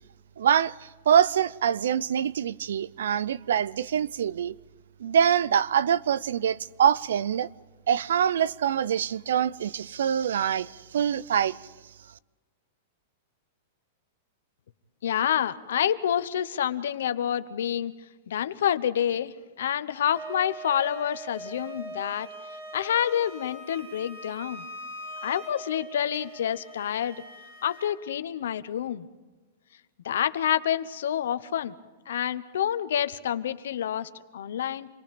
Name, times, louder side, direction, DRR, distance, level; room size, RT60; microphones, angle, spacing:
voice 1, 0.4-4.5 5.0-7.5 7.9-11.6, right 8 dB, 85° right, 0.5 m, -24 dB
voice 2, 15.0-17.9 18.3-22.3 22.7-24.7 25.2-27.2 27.6-29.1 30.0-31.7 32.1-34.9, left 10 dB, 80° left, 1.0 m, -28 dB
Wind instrument woodwind instrument, 20.1-28.0, right 2 dB, 55° right, 3.7 m, -42 dB
27.0 x 19.0 x 5.3 m
hypercardioid pair, 140°, 0 cm